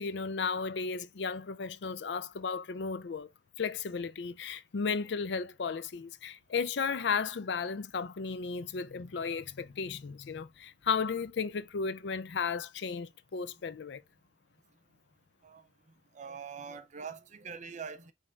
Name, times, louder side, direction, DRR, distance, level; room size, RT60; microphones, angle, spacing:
voice 1, 0.0-3.3 3.6-14.0, left 5 dB, 70° left, 0.5 m, -34 dB
voice 2, 16.1-18.1, right 6 dB, 45° right, 0.5 m, -43 dB
5.3 x 3.4 x 2.4 m
head